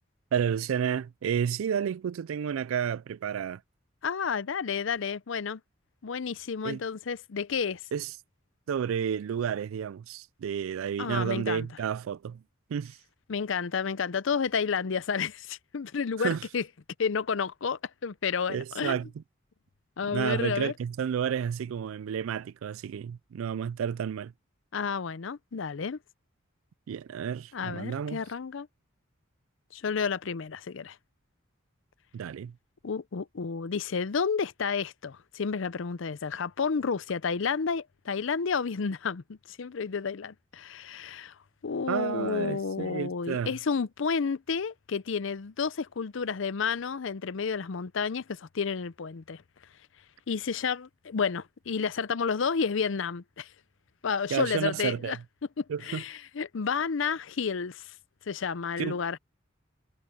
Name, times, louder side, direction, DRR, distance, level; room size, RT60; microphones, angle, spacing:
voice 1, 0.3-3.6 6.6-6.8 7.9-8.1 8.7-12.4 12.7-13.0 16.2-16.4 18.5-19.2 20.1-24.3 26.9-28.2 32.1-32.6 41.9-43.6 54.3-55.2 55.7-56.0 58.8-59.0, right 8 dB, 85° right, 0.3 m, -31 dB
voice 2, 4.0-5.6 6.0-7.8 11.0-11.7 13.3-16.6 17.0-19.0 20.0-20.7 24.7-26.0 27.5-28.7 29.7-31.0 32.8-41.4 41.6-49.4 50.3-53.5 54.0-55.2 55.6-57.9 58.3-59.2, left 5 dB, 70° left, 0.5 m, -31 dB
head